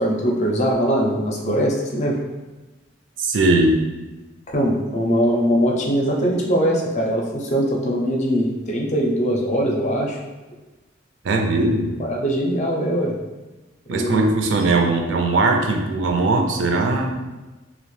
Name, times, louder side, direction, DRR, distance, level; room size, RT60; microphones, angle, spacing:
voice 1, 0.0-2.2 4.5-10.2 12.0-13.1 13.9-14.4, equal, 40° left, -1 dB, 0.4 m, -21 dB
voice 2, 3.2-3.7 11.2-12.0 13.9-17.1, right 2 dB, 75° right, 2 dB, 0.4 m, -19 dB
2.7 x 2.0 x 3.1 m, 1.1 s
head